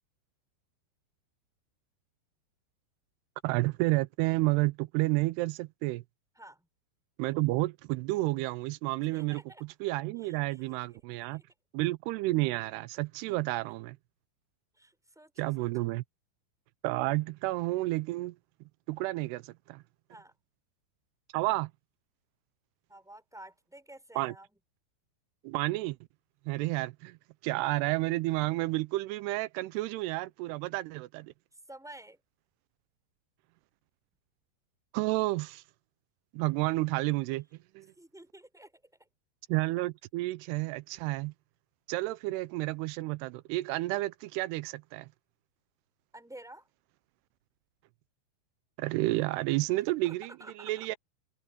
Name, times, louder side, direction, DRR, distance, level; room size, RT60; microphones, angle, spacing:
voice 1, 3.4-6.0 7.2-9.4 9.8-11.4 11.7-14.0 15.4-16.0 16.8-18.4 18.9-19.8 21.3-21.7 24.2-24.3 25.4-26.0 26.5-27.2 27.4-31.3 34.9-35.6 36.3-37.5 37.8-37.9 39.5-41.3 41.9-45.1 48.8-50.3 50.6-51.0, right 20 dB, 90° right, 2.7 m, -30 dB
voice 2, 6.3-6.7 9.1-9.6 10.2-10.8 11.3-11.5 14.7-15.9 20.1-20.3 22.9-24.6 31.5-32.2 38.0-39.1 46.1-46.7 50.0-50.9, right 1 dB, ahead, 5.0 m, -51 dB
omnidirectional pair, 4.7 m